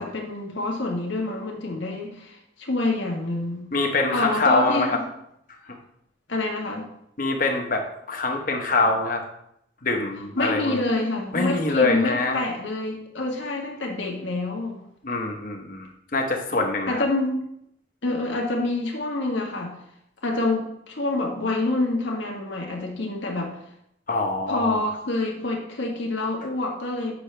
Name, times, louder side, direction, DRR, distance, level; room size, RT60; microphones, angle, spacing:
voice 1, 0.0-3.7 4.1-5.0 6.3-6.9 10.4-14.8 16.9-17.3 18.0-19.7 20.2-23.6 24.5-27.1, left 2 dB, 80° left, 0 dB, 1.6 m, -27 dB
voice 2, 3.7-5.0 5.7-5.8 7.2-9.2 9.8-10.8 11.3-12.4 15.0-17.0 24.1-24.8, left 3 dB, 45° left, 3 dB, 1.1 m, -24 dB
8.6 x 6.3 x 3.3 m, 0.75 s
head